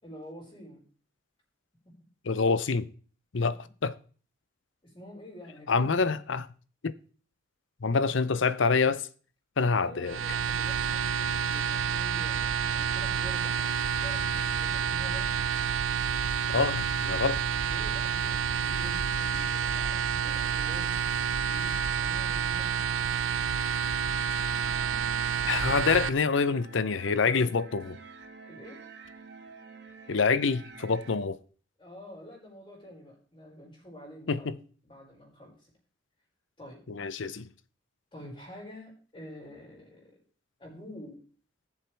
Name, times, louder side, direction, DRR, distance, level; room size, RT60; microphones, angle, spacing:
voice 1, 0.0-0.8 1.9-2.0 4.8-6.2 9.8-15.3 17.6-21.0 21.4-23.0 27.3-27.6 28.5-28.8 31.8-34.5 34.8-35.7 36.6-36.8 38.1-40.2 40.6-41.2, equal, 25° left, 5.1 m, -48 dB
voice 2, 2.3-2.9 3.3-3.6 3.8-3.9 5.7-6.5 6.8-6.9 7.8-9.1 9.6-10.2 16.5-17.4 25.4-28.0 30.1-31.4 34.3-34.5 36.9-37.5, left 4 dB, 75° left, 0.6 m, -26 dB
sound 1, 10.1-26.1, right 7 dB, 90° right, 0.6 m, -29 dB
sound 2, 24.5-31.2, right 4 dB, 55° right, 1.5 m, -48 dB
17.5 x 7.3 x 3.4 m
head